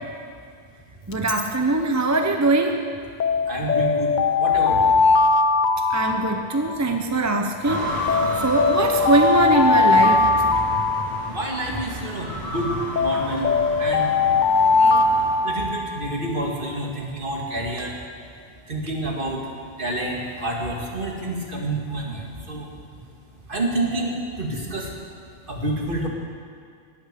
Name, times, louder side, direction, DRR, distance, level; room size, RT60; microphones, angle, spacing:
Alarm, 1.1-1.5 3.2-7.0 8.1-11.8 13.0-16.2, left 4 dB, 50° left, 0.7 m, -20 dB
voice 1, 1.1-2.8 5.9-7.9 8.4-10.2, right 2 dB, 15° right, 4 dB, 0.8 m, -21 dB
voice 2, 3.4-4.9 11.3-13.5 13.8-14.1 14.8-15.1 15.4-18.0 18.7-19.4 19.8-22.7 23.5-24.9 25.5-26.1, right 1 dB, 50° right, -1 dB, 2.4 m, -28 dB
sound 1, 7.6-15.3, equal, 35° right, 4.7 m, -31 dB
18.0 x 10.5 x 6.8 m, 2.2 s
omnidirectional pair, 1.1 m